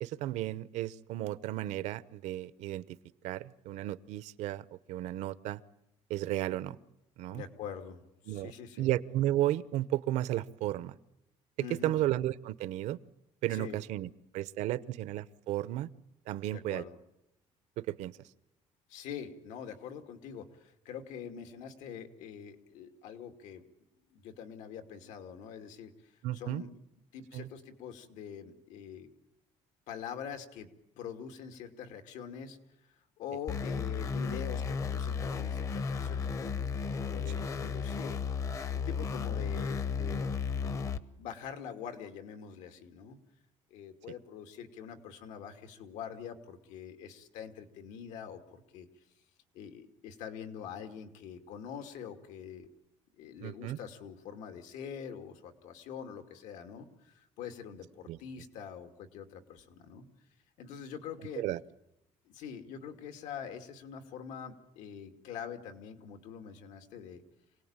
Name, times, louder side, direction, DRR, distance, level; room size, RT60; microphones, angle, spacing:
voice 1, 0.0-3.0 3.2-5.6 6.1-6.8 7.2-7.4 8.3-8.5 8.8-10.9 11.6-13.0 13.4-15.9 16.3-16.8 17.8-18.1 26.2-26.6 27.3-27.5 53.4-53.8 58.1-58.2 61.4-61.6, right 14 dB, 70° right, 16 dB, 0.9 m, -33 dB
voice 2, 7.3-8.9 11.6-12.0 13.5-13.8 16.5-17.0 18.9-23.6 24.1-26.7 27.1-29.1 29.9-30.7 31.0-32.6 33.2-38.4 38.7-40.9 41.2-43.2 43.7-48.9 49.5-52.7 53.2-60.0 60.6-61.4 62.3-67.2, left 7 dB, 85° left, 7 dB, 2.6 m, -44 dB
sound 1, 33.5-41.0, left 5 dB, 25° left, 0.8 m, -34 dB
26.5 x 18.5 x 8.9 m, 0.86 s
cardioid pair, 175°, 12 cm